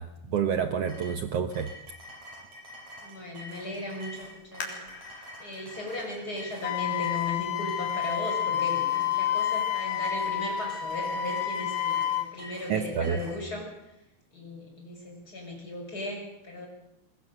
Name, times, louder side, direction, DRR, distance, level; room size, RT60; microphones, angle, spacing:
voice 1, 0.0-1.7 12.7-13.2, right 7 dB, 80° right, 8 dB, 1.4 m, -28 dB
sound 1, 0.9-13.4, equal, 50° right, 8.4 m, -46 dB
voice 2, 3.0-14.0 14.3-16.7, left 1 dB, 25° left, 1 dB, 6.7 m, -37 dB
sound 2, 4.6-8.0 8.6-8.7 9.3-9.7 10.1-10.2, left 4 dB, 65° left, 5.1 m, -45 dB
Wind instrument woodwind instrument, 6.6-12.3, left 10 dB, 85° left, 3.3 m, -29 dB
22.5 x 22.0 x 6.8 m, 0.82 s
omnidirectional pair, 4.2 m